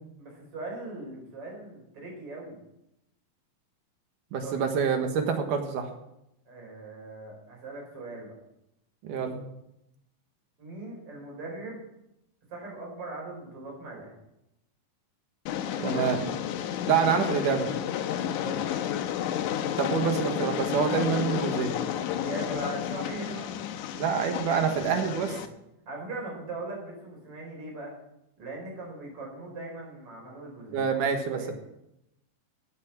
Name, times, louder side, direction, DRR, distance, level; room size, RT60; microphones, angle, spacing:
voice 1, 0.2-2.6 4.4-4.7 6.5-8.4 10.6-11.8 12.5-14.2 15.7-16.4 18.1-18.7 22.1-23.5 24.5-25.5 25.9-27.9 28.4-31.5, right 2 dB, 45° right, -2 dB, 6.0 m, -40 dB
voice 2, 4.3-5.9 9.0-9.4 15.8-16.2 16.9-17.7 19.8-21.7 23.9-25.3 30.7-31.5, right 6 dB, 75° right, 5 dB, 3.0 m, -26 dB
Train, 15.5-25.5, left 10 dB, 75° left, 2.1 m, -31 dB
16.0 x 8.6 x 6.0 m, 0.84 s
omnidirectional pair, 3.7 m